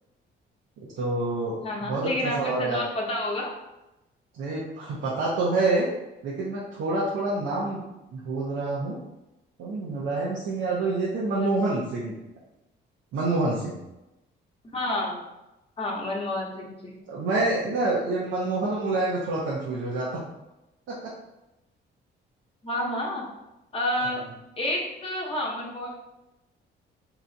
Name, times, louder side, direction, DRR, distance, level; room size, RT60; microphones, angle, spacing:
voice 1, 0.8-2.8 4.4-5.9 6.2-7.8 8.1-9.0 9.6-12.2 13.1-13.8 17.1-20.1 20.9-21.1, right 2 dB, 80° right, -5 dB, 0.8 m, -27 dB
voice 2, 1.6-3.5 11.4-11.7 14.7-15.3 15.8-17.0 22.6-23.2 23.7-24.2 24.6-25.9, left 1 dB, 30° left, -2 dB, 0.9 m, -29 dB
2.9 x 2.3 x 3.9 m, 0.96 s
cardioid pair, 90°, 20 cm